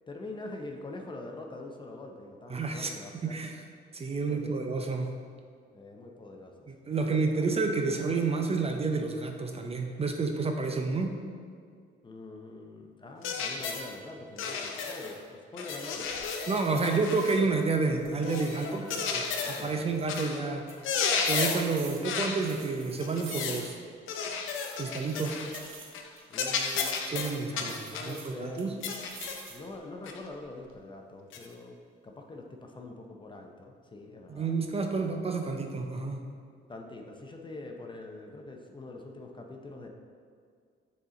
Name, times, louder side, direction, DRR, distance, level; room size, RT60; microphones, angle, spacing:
voice 1, 0.1-3.4 4.3-4.6 5.7-6.7 7.0-7.1 7.4-7.5 12.0-16.1 16.7-17.0 17.4-17.5 18.6-19.0 19.3-20.0 26.3-26.9 27.5-28.7 29.5-31.8 32.0-34.5 34.9-35.1 36.7-39.9, left 2 dB, 25° left, 2 dB, 0.7 m, -44 dB
voice 2, 2.5-2.9 3.2-3.6 3.9-5.1 6.7-11.1 16.5-18.8 19.1-19.2 19.5-20.7 21.3-23.8 24.8-25.4 27.1-28.7 34.3-36.2, right 4 dB, 30° right, 4 dB, 0.6 m, -30 dB
sound 1, 13.2-13.9 14.4-15.2 15.6-17.4 18.2-19.7 20.1-20.4 20.7-21.7 22.0-22.4 23.0-23.7 24.1-25.7 25.9-26.1 26.3-28.2 28.8-29.5 30.1-30.2 31.3-31.5, left 5 dB, 85° left, 0.7 m, -33 dB
sound 2, 15.9-16.2 16.6-17.7 18.0-20.3 20.7-23.9 24.1-24.2 24.8-27.0 27.6-29.7 30.2-30.8, right 5 dB, 85° right, 0.9 m, -50 dB
6.7 x 4.2 x 3.8 m, 2.2 s
cardioid pair, 90°, 20 cm